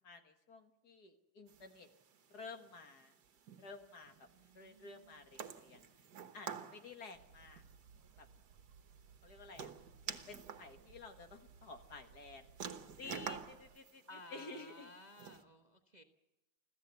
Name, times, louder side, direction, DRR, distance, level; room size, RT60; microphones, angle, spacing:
voice 1, 0.0-1.9 2.3-3.2 3.6-4.3 4.6-5.8 6.3-7.6 8.2-8.3 9.2-9.7 10.1-12.5 13.0-14.9, left 3 dB, 55° left, 6 dB, 2.1 m, -52 dB
sound 1, 1.5-15.4, right 7 dB, 55° right, 1.8 m, -51 dB
voice 2, 4.3-5.2 14.1-16.0, left 2 dB, 25° right, 4 dB, 1.1 m, -57 dB
sound 2, 7.1-13.8, right 6 dB, 80° right, 1.8 m, -63 dB
26.0 x 15.0 x 8.1 m, 0.99 s
omnidirectional pair, 2.2 m